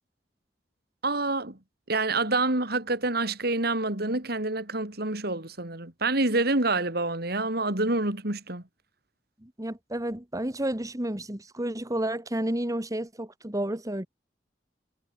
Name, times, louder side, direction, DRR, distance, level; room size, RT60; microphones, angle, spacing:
voice 1, 1.0-1.6 1.9-8.6, right 2 dB, 60° right, 3.8 m, -27 dB
voice 2, 9.4-14.1, right 1 dB, 20° right, 2.0 m, -31 dB
head